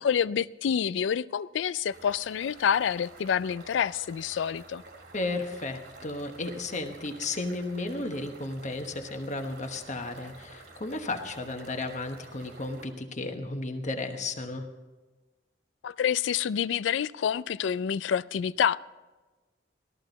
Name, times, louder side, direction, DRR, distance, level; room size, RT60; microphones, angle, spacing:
voice 1, 0.0-4.8 15.8-18.8, left 8 dB, 75° left, 0.3 m, -27 dB
sound 1, 1.9-12.9, right 3 dB, 65° right, 2.2 m, -50 dB
voice 2, 5.1-14.7, left 2 dB, 40° left, 1.2 m, -34 dB
14.0 x 13.5 x 4.0 m
head